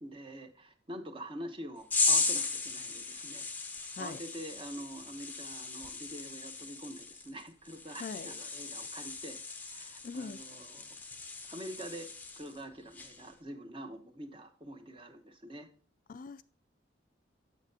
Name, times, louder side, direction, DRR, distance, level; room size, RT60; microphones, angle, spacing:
voice 1, 0.0-3.5 4.0-9.4 9.7-11.0 11.4-12.1 12.4-15.7, right 1 dB, 25° right, 0.9 m, -45 dB
sound 1, 1.9-12.6 12.9-13.3, left 4 dB, 10° left, 0.6 m, -36 dB
voice 2, 8.0-8.4 10.0-10.4 16.1-16.4, left 4 dB, 45° left, 0.3 m, -42 dB
7.4 x 7.3 x 2.8 m
head